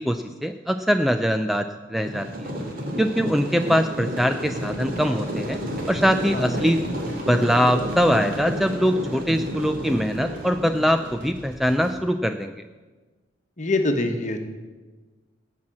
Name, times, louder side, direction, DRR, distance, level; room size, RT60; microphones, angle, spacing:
voice 1, 0.0-2.5 3.0-5.6 5.9-6.8 7.3-12.6, equal, ahead, 7 dB, 0.4 m, -22 dB
sound 1, 2.0-11.1, equal, 50° right, 2.4 m, -31 dB
sound 2, 4.6-12.0, equal, 70° right, 4.2 m, -44 dB
voice 2, 13.6-14.4, left 2 dB, 40° left, 5 dB, 1.3 m, -24 dB
17.0 x 5.9 x 7.6 m, 1.3 s
head